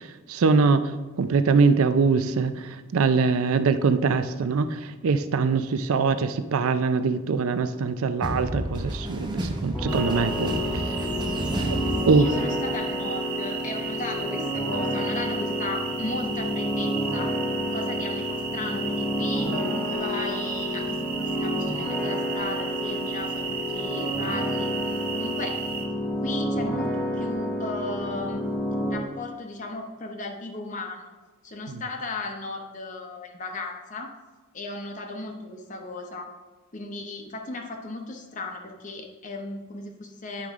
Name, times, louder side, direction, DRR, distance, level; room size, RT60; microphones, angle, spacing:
voice 1, 0.3-0.8 1.2-2.5 2.9-4.7 5.0-10.6 12.1-12.3, right 4 dB, 70° right, 12 dB, 0.4 m, -22 dB
sound 1, 8.2-12.7, right 1 dB, 20° right, 0.6 m, -31 dB
sound 2, 9.7-29.0, equal, 5° left, 0.9 m, -29 dB
sound 3, 9.9-25.8, right 6 dB, 40° right, 1.1 m, -35 dB
voice 2, 11.8-17.3 17.7-24.7 25.1-25.6 26.2-28.4 28.9-31.1 31.4-34.1 34.5-36.3 36.7-40.5, left 2 dB, 35° left, 3 dB, 0.7 m, -36 dB
10.0 x 4.9 x 3.5 m, 1.2 s
head